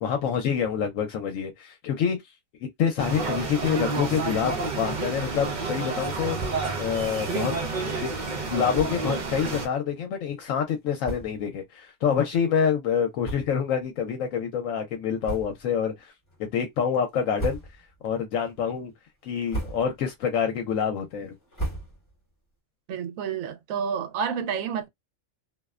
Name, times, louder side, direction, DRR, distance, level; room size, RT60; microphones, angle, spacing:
voice 1, 0.0-2.2 2.8-6.4 6.8-7.5 7.8-8.1 8.5-16.1 16.4-17.6 18.0-18.9 19.2-21.3, left 7 dB, 80° left, 1.0 m, -27 dB
sound 1, 3.0-9.7, right 3 dB, 45° right, 0.6 m, -30 dB
sound 2, 8.7-9.1 9.9-10.0 10.7-10.8 11.0-11.5 12.1-12.2 13.2-13.8 14.2-14.4 15.2-15.8 16.2-16.7 17.1-18.0 18.4-18.8 19.3-20.1 20.5-22.3, right 2 dB, 25° left, 1.0 m, -37 dB
voice 2, 22.9-24.9, right 7 dB, 80° right, 1.0 m, -29 dB
2.5 x 2.1 x 2.3 m
omnidirectional pair, 1.4 m